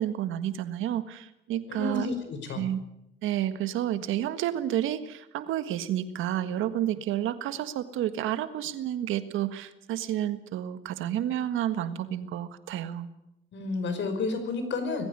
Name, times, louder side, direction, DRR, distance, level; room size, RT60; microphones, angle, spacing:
voice 1, 0.0-2.1 2.6-2.8 3.2-13.1, right 11 dB, 90° right, 11 dB, 1.7 m, -30 dB
voice 2, 1.7-2.6 13.5-15.1, left 3 dB, 70° left, 8 dB, 5.3 m, -31 dB
20.0 x 15.5 x 9.7 m, 0.85 s
cardioid pair, 90°, 20 cm